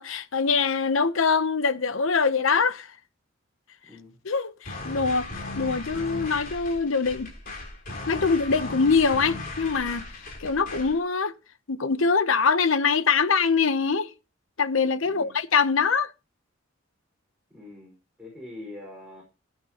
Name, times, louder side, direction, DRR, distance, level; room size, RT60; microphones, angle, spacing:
voice 1, 0.0-2.9 4.3-5.3 5.6-7.3 8.1-10.0 10.4-11.3 11.7-14.1 14.6-16.1, left 5 dB, 75° left, 0.8 m, -23 dB
voice 2, 3.8-4.2 15.0-15.4 17.5-19.2, left 2 dB, 5° right, 4.8 m, -44 dB
sound 1, 4.7-11.0, left 2 dB, 45° left, 4.0 m, -37 dB
15.5 x 9.0 x 2.9 m
head